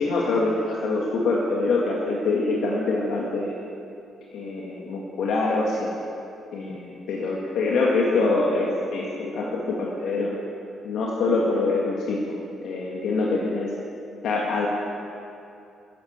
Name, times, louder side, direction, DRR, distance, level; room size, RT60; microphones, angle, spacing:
voice 1, 0.0-3.5 4.3-5.9 6.5-10.3 10.8-13.7 14.2-14.7, left 3 dB, 75° left, -3 dB, 1.8 m, -25 dB
13.0 x 8.6 x 8.7 m, 2.7 s
cardioid pair, 90°, 0 cm